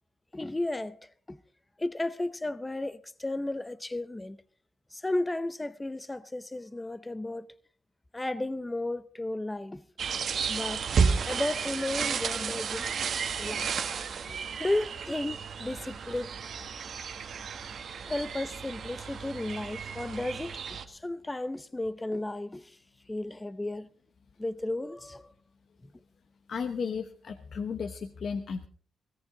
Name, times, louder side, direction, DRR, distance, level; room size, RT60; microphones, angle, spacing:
voice 1, 0.3-1.4 1.8-4.4 4.9-7.5 8.1-9.8 10.5-10.9 11.3-12.9 13.4-13.7 14.3-16.4 18.0-22.8 23.1-23.9 24.4-25.3, left 2 dB, 15° left, 0.6 m, -34 dB
sound 1, 10.0-20.8, right 6 dB, 55° right, 1.3 m, -32 dB
voice 2, 26.5-28.7, left 6 dB, 50° left, 1.0 m, -34 dB
17.5 x 17.0 x 3.7 m
cardioid pair, 115°, 0 cm